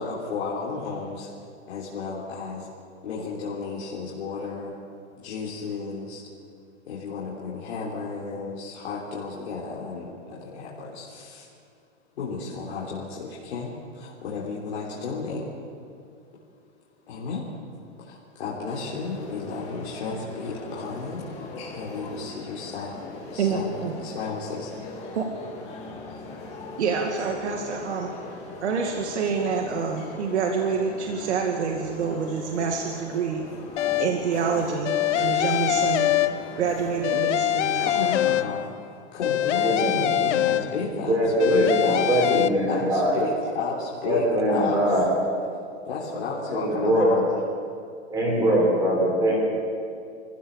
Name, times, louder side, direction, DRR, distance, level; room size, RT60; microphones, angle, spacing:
voice 1, 0.0-1.3 1.7-2.7 3.0-4.8 5.2-6.2 6.9-11.5 12.2-15.5 17.1-17.4 18.0-21.2 21.7-23.0 23.3-24.7 37.8-38.6 39.1-44.8 45.9-47.3, left 4 dB, 60° left, -5 dB, 3.6 m, -33 dB
sound 1, 18.7-38.0, left 3 dB, 20° left, 2.2 m, -40 dB
voice 2, 23.4-24.0 25.1-25.3 26.8-28.1 28.6-33.4 34.0-36.1 36.6-38.2, right 5 dB, 70° right, 2 dB, 2.2 m, -27 dB
sound 2, 33.8-34.3 34.9-36.7 37.0-38.8 39.2-41.0 41.4-42.5, left 11 dB, 80° left, 0.9 m, -24 dB
voice 3, 39.5-40.0 40.9-43.1 44.0-45.0 46.5-47.1 48.1-49.3, equal, 10° right, -3 dB, 4.2 m, -22 dB
24.5 x 15.5 x 7.3 m, 2.3 s
supercardioid pair, 180°, 35 cm